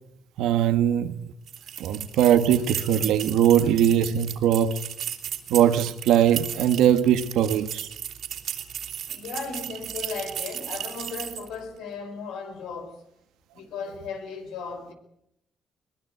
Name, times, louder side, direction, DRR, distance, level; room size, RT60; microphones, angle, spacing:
voice 1, 0.4-1.2 1.8-4.8 5.5-7.9, right 10 dB, 90° right, 1.5 m, -21 dB
sound 1, 1.5-11.5, right 10 dB, 75° right, 3.4 m, -35 dB
voice 2, 9.1-13.0 13.5-14.9, left 5 dB, 90° left, 5.1 m, -36 dB
22.0 x 20.0 x 9.3 m
cardioid pair, 90°, 0 cm